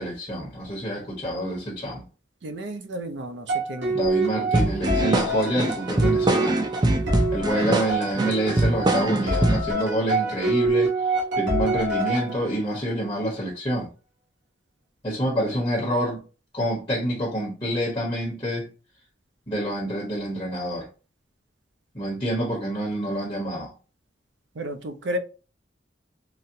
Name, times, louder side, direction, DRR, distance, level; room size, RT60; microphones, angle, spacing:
voice 1, 0.0-2.0 3.9-6.7 7.3-10.9 11.3-13.9 15.0-16.2 16.5-18.7 19.5-20.9 21.9-23.7, right 1 dB, 25° left, 1.0 m, -27 dB
voice 2, 2.4-4.0 24.6-25.2, equal, 75° right, 0.5 m, -32 dB
sound 1, 3.5-12.8, right 2 dB, 90° right, 1.3 m, -26 dB
sound 2, 4.5-9.7, right 2 dB, 25° right, 0.4 m, -23 dB
4.0 x 2.1 x 2.6 m
head